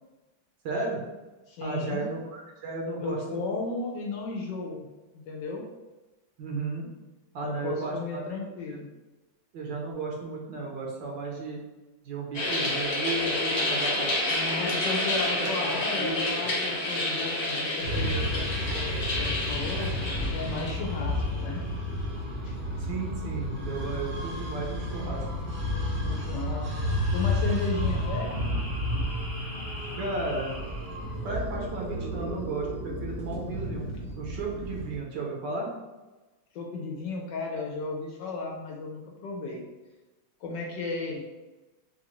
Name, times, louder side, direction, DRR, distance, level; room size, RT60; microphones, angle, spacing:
voice 1, 0.6-1.0 1.6-3.4 6.4-6.9 7.3-8.2 9.5-11.6 12.0-14.7 15.4-16.3 22.8-25.3 30.0-30.5 31.0-33.8 34.2-35.7, right 3 dB, 70° right, -2 dB, 1.3 m, -34 dB
voice 2, 1.5-2.1 3.0-4.9 5.3-5.6 7.4-8.9 14.6-19.9 20.3-21.6 22.4-22.5 26.0-26.6 27.1-28.5 36.5-39.7 40.4-41.2, left 3 dB, 75° left, -1 dB, 1.2 m, -34 dB
sound 1, 12.3-20.7, left 2 dB, 50° left, 1.5 m, -29 dB
sound 2, 17.8-35.0, left 1 dB, 50° right, 0.7 m, -31 dB
sound 3, 17.9-22.7 26.5-31.2, equal, 25° left, 0.9 m, -47 dB
3.9 x 2.5 x 2.9 m, 1.1 s
omnidirectional pair, 2.1 m